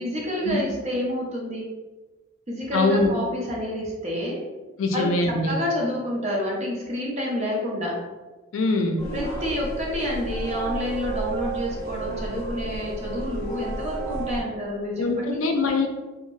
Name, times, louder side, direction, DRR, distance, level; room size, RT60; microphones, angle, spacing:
voice 1, 0.0-1.7 2.5-4.4 4.9-8.0 9.1-15.4, left 1 dB, 30° right, -3 dB, 0.6 m, -29 dB
voice 2, 2.7-3.1 4.8-5.6 8.5-9.0 15.0-15.9, left 2 dB, 65° left, 3 dB, 0.4 m, -23 dB
sound 1, 9.0-14.4, right 2 dB, 15° left, 0.7 m, -32 dB
2.6 x 2.1 x 3.0 m, 1.2 s
head